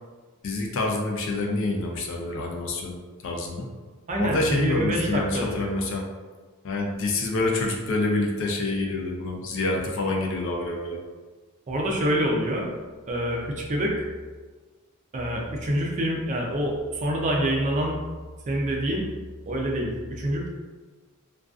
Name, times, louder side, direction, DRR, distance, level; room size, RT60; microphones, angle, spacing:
voice 1, 0.4-3.7 4.2-6.1 6.6-11.0, left 2 dB, 60° left, 0 dB, 0.4 m, -27 dB
voice 2, 4.1-5.7 11.7-12.7 13.1-14.1 15.1-18.0 18.5-19.0 19.5-20.5, right 1 dB, 35° right, -1 dB, 0.4 m, -26 dB
2.4 x 2.3 x 2.3 m, 1.4 s
head